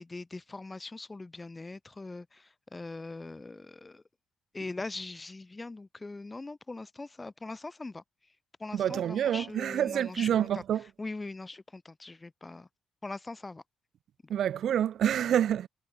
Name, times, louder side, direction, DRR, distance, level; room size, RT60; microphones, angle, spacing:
voice 1, 0.0-4.0 4.5-8.0 8.6-10.6 11.0-12.7 13.0-13.6 14.2-14.3, left 3 dB, 20° left, 3.4 m, -41 dB
voice 2, 8.7-10.8 14.3-15.7, right 10 dB, 65° right, 0.6 m, -27 dB
cardioid pair, 115°, 0 cm